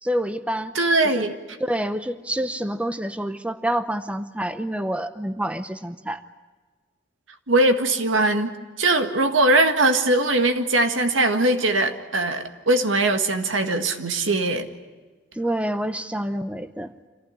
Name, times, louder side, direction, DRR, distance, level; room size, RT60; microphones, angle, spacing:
voice 1, 0.0-0.8 1.1-1.3 1.6-6.2 15.3-16.9, right 1 dB, 5° right, 10 dB, 0.7 m, -27 dB
voice 2, 0.7-1.4 7.5-8.5 8.8-14.7, right 2 dB, 85° right, 7 dB, 1.8 m, -21 dB
26.5 x 15.5 x 10.0 m, 1.4 s
head